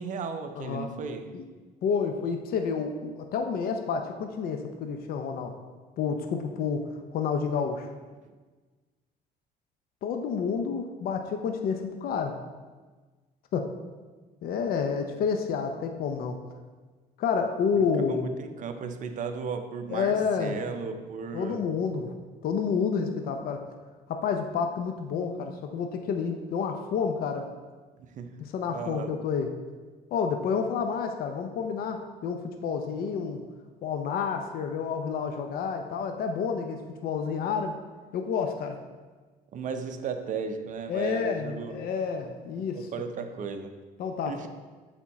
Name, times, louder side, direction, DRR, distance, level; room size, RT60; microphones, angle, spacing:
voice 1, 0.0-1.4 8.3-8.4 17.8-21.7 28.0-28.4 28.7-29.2 39.5-41.8 42.5-43.8 44.3-44.5, right 5 dB, 50° right, 0.6 m, -35 dB
voice 2, 0.6-0.9 1.3-1.4 1.8-5.5 6.0-7.9 10.0-12.4 13.5-13.7 14.4-16.4 17.2-18.4 19.9-20.6 21.3-22.1 22.4-23.6 24.1-27.5 28.4-29.5 30.1-33.4 33.8-37.8 38.1-38.8 40.9-42.9 44.0-44.3, left 6 dB, 60° left, 0.6 m, -29 dB
7.1 x 3.6 x 4.1 m
cardioid pair, 110°, 17 cm